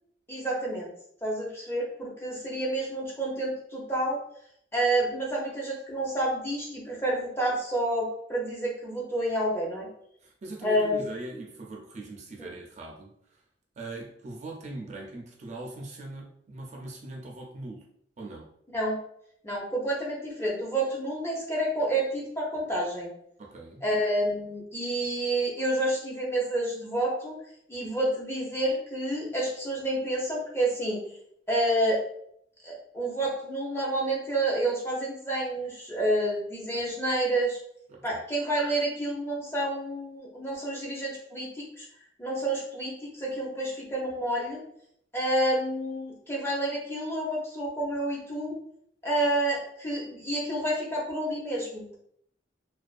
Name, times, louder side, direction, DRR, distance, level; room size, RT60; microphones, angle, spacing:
voice 1, 0.3-0.9 1.2-4.2 4.7-9.9 10.6-11.1 12.4-12.5 18.7-19.0 19.4-23.1 23.8-27.4 27.7-31.0 31.5-32.0 32.6-37.6 38.0-41.9 42.2-44.6 45.1-48.5 49.0-52.0, right 1 dB, 15° left, -3 dB, 0.6 m, -29 dB
voice 2, 10.2-13.4 13.8-17.8 18.2-18.5 23.4-23.8 37.9-38.2, right 2 dB, 40° right, 0 dB, 0.4 m, -41 dB
2.4 x 2.3 x 2.4 m, 0.69 s
head